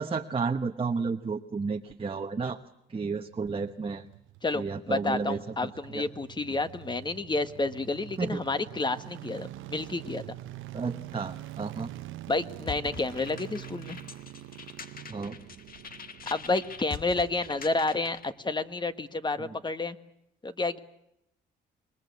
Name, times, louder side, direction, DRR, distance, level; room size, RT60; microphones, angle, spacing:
voice 1, 0.0-2.6 2.9-4.0 4.5-6.0 8.2-8.4 10.7-11.9 15.1-15.4 19.4-19.5, right 4 dB, 25° right, 5 dB, 1.2 m, -32 dB
sound 1, 3.3-18.4 18.6-18.7, right 14 dB, 85° right, 0.9 m, -45 dB
voice 2, 4.4-10.4 12.3-14.0 16.3-20.0 20.4-20.8, left 3 dB, 20° left, 11 dB, 1.5 m, -30 dB
sound 2, 12.7-18.3, left 6 dB, 45° left, 1.6 m, -44 dB
26.5 x 21.0 x 8.4 m, 0.82 s
cardioid pair, 90°, 20 cm